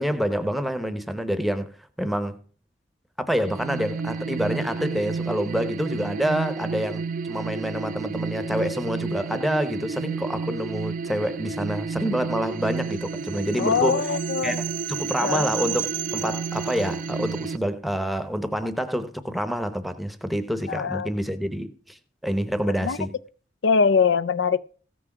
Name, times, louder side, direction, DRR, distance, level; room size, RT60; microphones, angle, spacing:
voice 1, 0.0-1.7 2.0-2.4 3.2-14.0 14.4-22.0 22.2-23.2, equal, ahead, 0.8 m, -27 dB
sound 1, 3.4-17.6, right 5 dB, 45° right, 0.5 m, -31 dB
voice 2, 13.6-14.6 15.2-15.5 20.7-21.1 22.8-23.0 23.6-24.6, left 5 dB, 80° left, 0.5 m, -22 dB
14.5 x 6.2 x 5.9 m
head